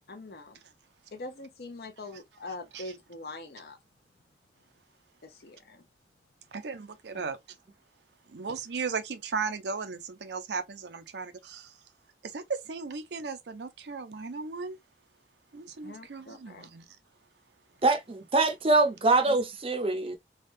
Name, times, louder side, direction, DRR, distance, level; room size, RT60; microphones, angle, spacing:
voice 1, 0.1-0.6 1.1-3.8 5.2-5.9 15.8-16.7, left 2 dB, 60° left, 0.7 m, -43 dB
voice 2, 6.5-7.4 8.3-11.8 12.2-14.8 15.5-16.9 19.3-19.4, right 5 dB, 75° right, 0.5 m, -36 dB
voice 3, 17.8-20.2, right 3 dB, 30° right, 0.6 m, -24 dB
3.4 x 2.3 x 2.5 m
head